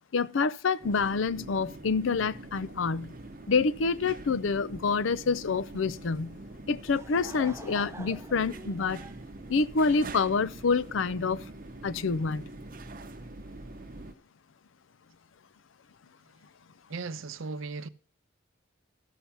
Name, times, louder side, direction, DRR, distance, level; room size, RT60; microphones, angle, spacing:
voice 1, 0.1-3.1 3.5-6.4 6.7-9.0 9.5-11.4 11.8-12.5, left 4 dB, 80° left, 0.5 m, -27 dB
sound 1, 0.8-14.1, right 2 dB, 45° right, 0.8 m, -44 dB
Laughter / Crowd, 6.6-10.3, right 2 dB, 15° right, 0.5 m, -47 dB
voice 2, 16.9-17.9, right 4 dB, 90° right, 0.7 m, -38 dB
14.0 x 5.7 x 7.0 m
head